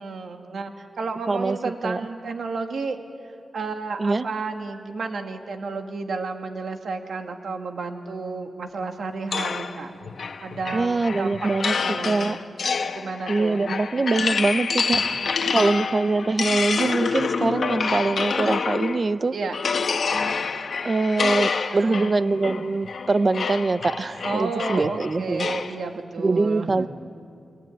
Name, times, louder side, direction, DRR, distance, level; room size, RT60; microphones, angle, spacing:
voice 1, 0.0-3.0 3.5-9.9 10.4-13.6 14.8-15.6 19.3-19.8 21.7-22.1 24.2-26.9, right 4 dB, 70° right, 5 dB, 2.1 m, -32 dB
sound 1, 9.3-19.1 19.5-25.8, left 5 dB, 65° left, 1.3 m, -27 dB
voice 2, 10.7-11.8 12.1-12.4 13.3-15.0 15.5-19.4 20.5-25.5 26.2-26.9, right 3 dB, 35° right, 14 dB, 0.7 m, -23 dB
29.0 x 21.5 x 9.2 m, 2.5 s
wide cardioid pair, 120°, 0 cm